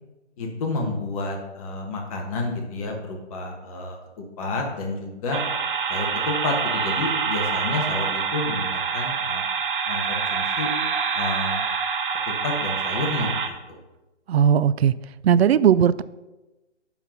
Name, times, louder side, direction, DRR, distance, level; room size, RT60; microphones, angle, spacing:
voice 1, 0.4-5.4 5.9-9.4 9.9-10.7 11.1-11.6 12.3-13.8, left 2 dB, 30° left, 1.3 m, -30 dB
sound 1, 5.3-13.5, right 6 dB, 45° right, 1.0 m, -26 dB
voice 2, 14.3-14.9 15.2-16.0, right 8 dB, 60° right, 0.4 m, -17 dB
10.0 x 4.0 x 5.8 m
hypercardioid pair, 145°, 36 cm